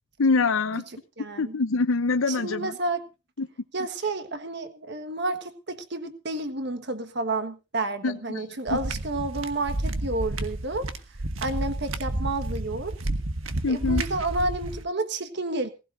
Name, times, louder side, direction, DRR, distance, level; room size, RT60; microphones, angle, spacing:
voice 1, 0.2-0.8 1.4-2.7 3.4-3.5 8.0-8.4 8.7-8.8 13.6-14.0, left 3 dB, 80° left, 0.7 m, -24 dB
voice 2, 1.2-1.6 2.3-3.0 3.7-10.9 11.4-12.9 13.7-15.7, right 2 dB, 55° right, 1.5 m, -30 dB
sound 1, 8.7-14.8, right 1 dB, 80° right, 1.5 m, -31 dB
18.5 x 16.5 x 2.6 m
head